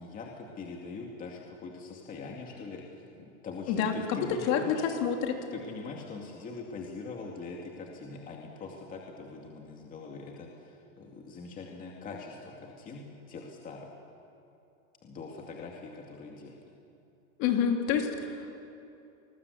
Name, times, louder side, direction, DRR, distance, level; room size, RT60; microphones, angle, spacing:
voice 1, 0.0-4.8 5.5-13.9 15.0-16.6, left 4 dB, 20° left, 0 dB, 2.4 m, -43 dB
voice 2, 3.7-5.5 17.4-18.6, left 7 dB, 40° left, 3 dB, 3.2 m, -28 dB
27.0 x 20.5 x 8.3 m, 2.8 s
supercardioid pair, 160°, 42 cm